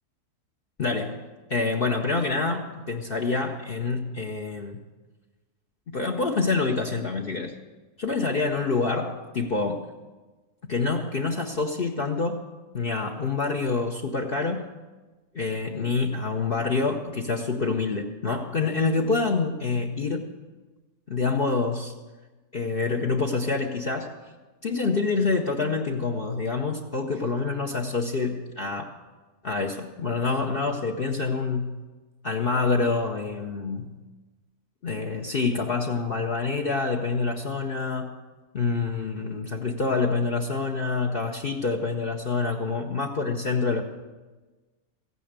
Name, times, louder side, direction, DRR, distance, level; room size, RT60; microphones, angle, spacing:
voice 1, 0.8-4.8 5.9-7.5 8.0-9.9 10.7-12.4 12.7-14.7 15.3-20.3 21.1-21.9 22.5-24.2 24.6-29.0 29.4-31.8 32.2-33.9 34.8-38.2 38.5-43.8, left 4 dB, 45° left, 3 dB, 0.9 m, -27 dB
15.0 x 9.5 x 6.7 m, 1.2 s
omnidirectional pair, 1.6 m